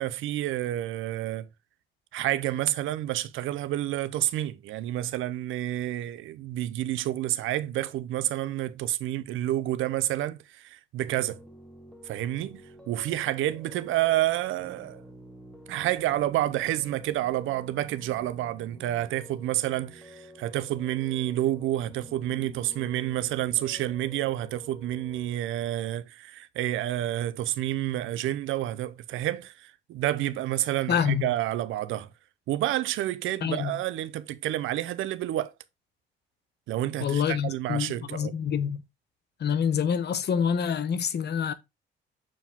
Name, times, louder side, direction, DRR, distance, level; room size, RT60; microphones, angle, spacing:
voice 1, 0.0-1.5 2.1-11.4 12.0-15.0 15.7-32.1 32.5-35.5 36.7-38.3, right 14 dB, 85° right, 0.7 m, -29 dB
Piano, 11.0-25.4, left 1 dB, 5° left, 1.7 m, -50 dB
voice 2, 30.9-31.3 33.4-33.8 37.0-38.8 39.4-41.5, left 7 dB, 55° left, 1.0 m, -27 dB
7.6 x 4.6 x 3.6 m
cardioid pair, 90°, 20 cm